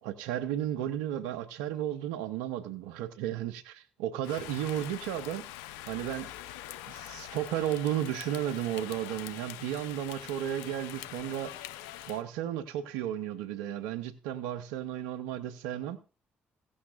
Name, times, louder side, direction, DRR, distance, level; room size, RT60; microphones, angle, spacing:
voice 1, 0.0-5.5 5.9-6.3 6.9-11.5 12.1-16.0, right 11 dB, 90° right, 0.7 m, -34 dB
Rain, 4.2-12.2, left 13 dB, 85° left, 0.5 m, -44 dB
15.5 x 15.0 x 2.4 m
hypercardioid pair, 50°, 5 cm